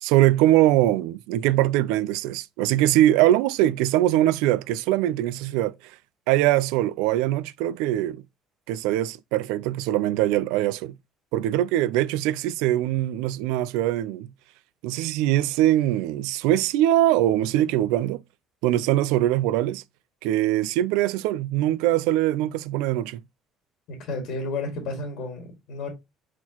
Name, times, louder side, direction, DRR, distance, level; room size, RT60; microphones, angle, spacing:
voice 1, 0.0-6.0 6.3-8.2 8.7-10.9 11.3-14.3 14.8-18.2 18.6-19.8 20.2-23.2, right 14 dB, 85° right, 0.3 m, -22 dB
voice 2, 24.1-25.9, left 3 dB, 70° left, 1.9 m, -31 dB
4.3 x 4.0 x 2.9 m
supercardioid pair, 95°, 0 cm